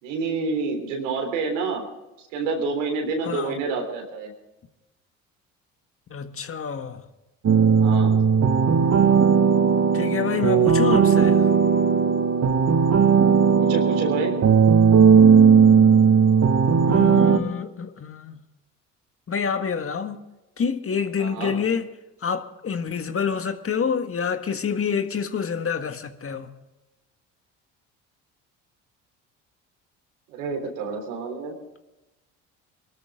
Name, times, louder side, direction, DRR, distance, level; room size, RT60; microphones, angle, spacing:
voice 1, 0.0-1.9 2.2-4.3 7.7-8.2 13.6-14.4 21.2-21.5 30.3-31.6, right 4 dB, 80° right, 3.7 m, -28 dB
voice 2, 3.2-3.6 6.1-7.1 9.9-11.5 16.9-18.4 19.3-20.2 20.6-21.9 22.2-26.5, left 6 dB, 35° left, 1.7 m, -27 dB
sound 1, 7.4-17.4, right 6 dB, 45° right, 1.7 m, -17 dB
22.5 x 13.0 x 3.8 m
hypercardioid pair, 60°, 37 cm